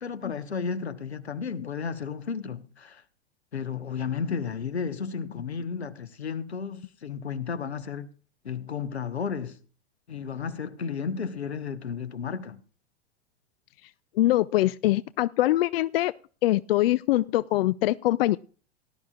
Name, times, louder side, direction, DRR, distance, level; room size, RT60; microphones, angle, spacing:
voice 1, 0.0-3.0 3.5-8.1 8.4-9.6 10.1-12.6, left 6 dB, 90° left, 1.3 m, -33 dB
voice 2, 14.2-16.1 16.4-18.4, left 15 dB, 65° left, 0.5 m, -23 dB
18.0 x 11.5 x 2.5 m
hypercardioid pair, 95°, 32 cm